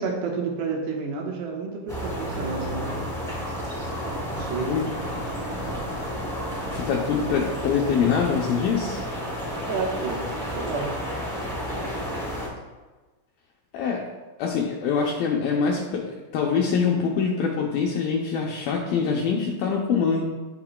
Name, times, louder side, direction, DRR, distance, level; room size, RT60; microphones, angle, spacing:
voice 1, 0.0-2.9 4.2-4.7 9.7-10.2 10.5-11.0, right 4 dB, 80° right, 0 dB, 3.1 m, -30 dB
sound 1, 1.9-12.5, equal, ahead, 1.8 m, -31 dB
voice 2, 6.7-9.0 13.7-14.1 14.4-20.2, left 6 dB, 80° left, -1 dB, 2.1 m, -24 dB
17.5 x 5.9 x 2.2 m, 1.2 s
omnidirectional pair, 4.9 m